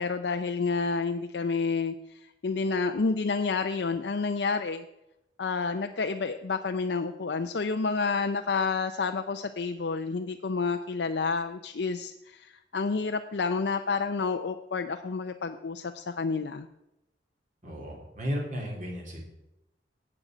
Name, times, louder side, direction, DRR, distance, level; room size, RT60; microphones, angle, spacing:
voice 1, 0.0-1.9 2.4-4.8 5.4-16.7, left 4 dB, 70° left, 6 dB, 0.5 m, -29 dB
voice 2, 17.6-19.2, equal, 45° right, 0 dB, 3.3 m, -34 dB
14.0 x 8.8 x 5.0 m, 0.91 s
head